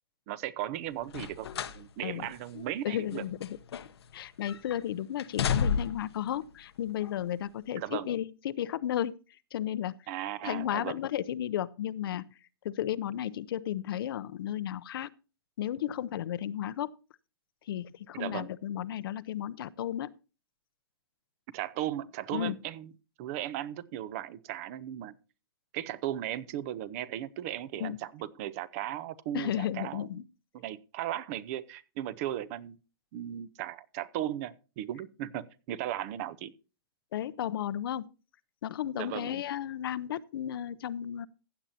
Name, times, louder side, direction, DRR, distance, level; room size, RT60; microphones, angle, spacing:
voice 1, 0.3-3.2 7.7-8.1 10.1-11.0 18.1-18.5 21.5-22.9 23.2-25.1 25.7-30.1 30.5-32.8 33.1-36.5 38.9-39.3, right 12 dB, 35° right, 0.6 m, -36 dB
sound 1, 1.1-1.8 2.2-2.4 3.1-4.1 4.4-4.8 5.2-6.1 7.0-7.1, left 7 dB, 90° left, 0.9 m, -32 dB
voice 2, 2.6-3.6 4.1-9.1 9.5-10.0 10.4-12.3 12.6-15.1 15.6-16.9 17.7-20.1 22.3-22.6 27.8-28.0 29.3-30.2 37.1-38.1 38.6-41.3, left 11 dB, 65° left, 0.6 m, -33 dB
15.5 x 8.8 x 2.8 m
hypercardioid pair, 155°, 13 cm